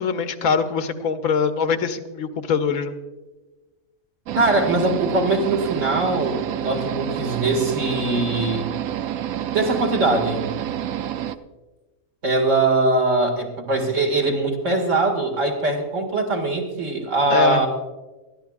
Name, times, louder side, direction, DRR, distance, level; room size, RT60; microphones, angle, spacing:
voice 1, 0.0-3.0 17.3-17.6, left 5 dB, 80° left, 9 dB, 1.2 m, -23 dB
voice 2, 4.3-8.7 9.5-10.5 12.2-17.7, right 2 dB, 60° right, 1 dB, 2.4 m, -21 dB
sound 1, 4.3-11.4, right 10 dB, 85° right, 1.0 m, -28 dB
21.0 x 14.0 x 2.4 m, 1.2 s
omnidirectional pair, 1.4 m